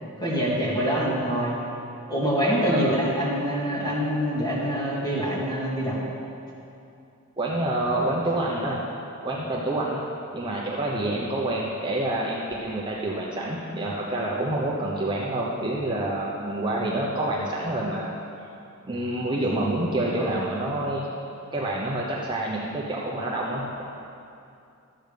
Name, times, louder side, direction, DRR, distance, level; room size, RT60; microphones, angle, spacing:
voice 1, 0.2-1.6 2.1-6.0, equal, 20° left, -6 dB, 2.4 m, -25 dB
voice 2, 7.4-8.8 9.2-10.0 10.3-18.2 18.9-21.1 21.5-23.8, right 1 dB, 20° right, -5 dB, 0.9 m, -27 dB
12.5 x 7.9 x 5.1 m, 2.6 s
head